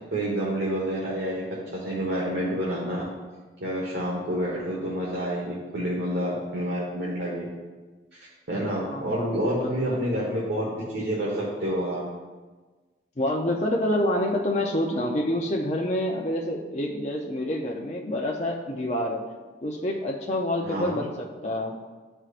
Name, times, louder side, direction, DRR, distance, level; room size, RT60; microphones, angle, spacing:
voice 1, 0.1-1.4 1.7-3.1 3.6-7.5 8.1-8.2 8.5-12.0 20.6-21.0, equal, 90° right, -5 dB, 1.3 m, -28 dB
voice 2, 8.9-10.0 13.2-19.2 19.6-21.7, left 1 dB, 40° left, -1 dB, 0.6 m, -27 dB
11.0 x 4.5 x 2.5 m, 1.3 s
head